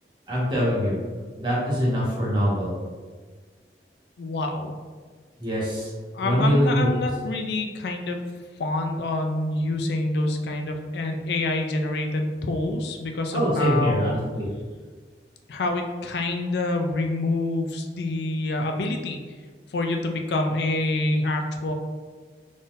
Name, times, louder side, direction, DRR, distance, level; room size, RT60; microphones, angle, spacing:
voice 1, 0.3-1.0 1.4-2.7 5.4-5.9 6.2-6.9 13.3-14.5, equal, 25° right, -7 dB, 1.2 m, -23 dB
voice 2, 4.2-4.7 6.1-8.2 8.6-14.2 15.5-19.2 19.7-21.7, left 2 dB, 70° left, 4 dB, 0.4 m, -27 dB
4.0 x 3.7 x 2.5 m, 1.5 s
head